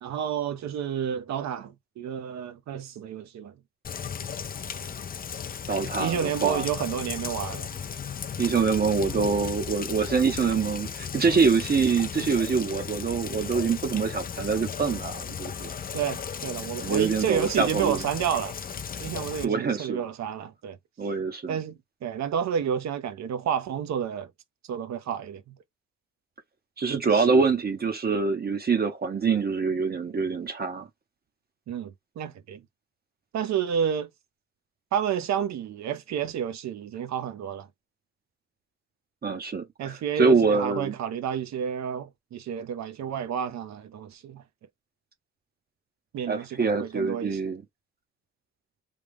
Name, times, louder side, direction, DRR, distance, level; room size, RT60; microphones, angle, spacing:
voice 1, 0.0-3.5 6.0-7.7 15.9-18.6 19.0-20.8 21.5-24.3 24.7-25.5 27.1-27.3 31.7-32.6 33.3-34.1 34.9-37.7 39.8-44.4 46.1-47.4, right 8 dB, 65° right, 0.8 m, -30 dB
Rain, 3.8-19.4, left 7 dB, 30° left, 0.5 m, -35 dB
voice 2, 5.7-6.7 8.4-15.7 16.8-18.0 19.4-20.0 21.0-21.6 26.8-30.9 39.2-40.9 46.3-47.6, right 5 dB, 30° right, 0.8 m, -25 dB
3.4 x 2.3 x 3.4 m
cardioid pair, 90°, 30 cm